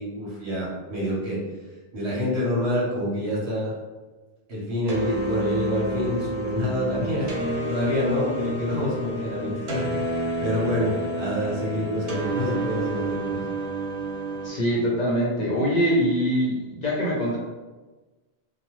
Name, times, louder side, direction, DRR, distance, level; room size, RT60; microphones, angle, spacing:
voice 1, 0.0-1.4 1.9-3.8 4.5-7.3 7.7-9.9 10.4-13.5, left 1 dB, 75° right, -6 dB, 1.3 m, -27 dB
sound 1, 4.9-14.5, right 1 dB, 50° right, 0.5 m, -29 dB
voice 2, 14.4-17.4, equal, 50° left, -4 dB, 0.6 m, -23 dB
2.8 x 2.0 x 3.1 m, 1.2 s
omnidirectional pair, 1.1 m